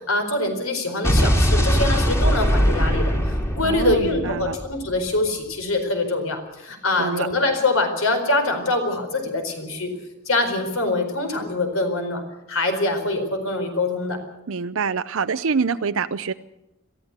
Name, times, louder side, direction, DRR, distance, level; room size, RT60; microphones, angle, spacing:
voice 1, 0.0-9.9 10.3-12.2 12.5-14.2, left 2 dB, 65° left, 6 dB, 4.5 m, -24 dB
Explosion, 1.0-5.1, equal, 15° left, 2.6 m, -21 dB
voice 2, 3.6-4.6 7.0-7.3 14.5-16.3, right 5 dB, 65° right, 11 dB, 0.6 m, -25 dB
22.5 x 15.0 x 8.2 m, 0.90 s
head